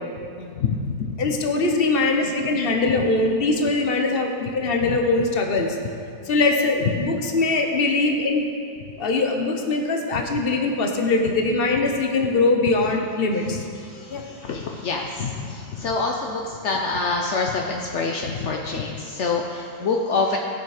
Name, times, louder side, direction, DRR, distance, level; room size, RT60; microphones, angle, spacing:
voice 1, 0.4-1.2 4.8-5.0 6.9-7.0 10.1-10.2 13.5-20.4, left 4 dB, 65° left, 0 dB, 0.7 m, -26 dB
voice 2, 1.2-5.8 6.3-8.5 9.0-13.6 14.1-14.2, left 3 dB, 40° left, 2 dB, 0.9 m, -22 dB
16.5 x 6.9 x 5.0 m, 2.4 s
omnidirectional pair, 2.1 m